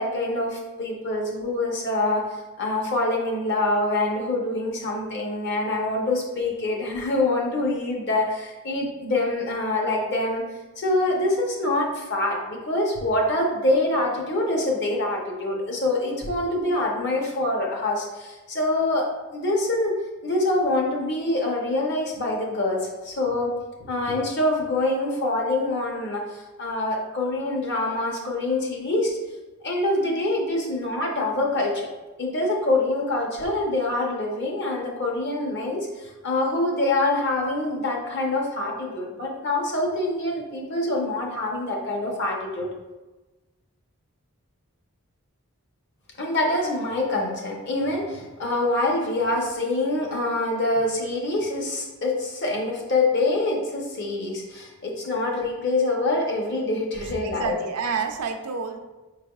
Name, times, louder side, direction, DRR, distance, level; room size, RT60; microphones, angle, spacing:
voice 1, 0.0-2.2 2.6-10.4 10.8-20.0 20.2-23.5 23.8-29.2 29.6-31.9 32.2-42.7 46.2-57.5, left 2 dB, 50° left, -1 dB, 0.8 m, -25 dB
voice 2, 56.9-58.8, right 5 dB, 85° right, 5 dB, 0.5 m, -29 dB
5.2 x 3.3 x 2.3 m, 1.2 s
head